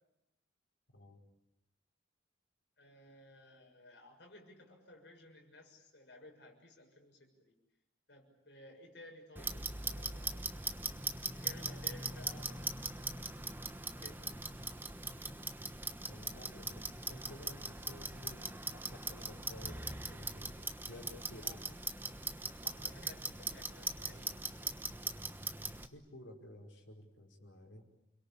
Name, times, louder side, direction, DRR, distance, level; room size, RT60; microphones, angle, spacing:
voice 1, 2.8-7.5 8.1-10.7 11.3-13.4 14.0-14.2 21.4-21.6 22.6-24.4, left 1 dB, 65° left, 2 dB, 6.7 m, -57 dB
Clock, 9.4-25.9, right 3 dB, 10° right, 1.1 m, -41 dB
voice 2, 16.1-18.4 18.7-20.5 20.8-21.6 25.9-27.8, left 1 dB, 80° left, 3 dB, 5.1 m, -53 dB
29.5 x 22.0 x 8.5 m, 0.88 s
head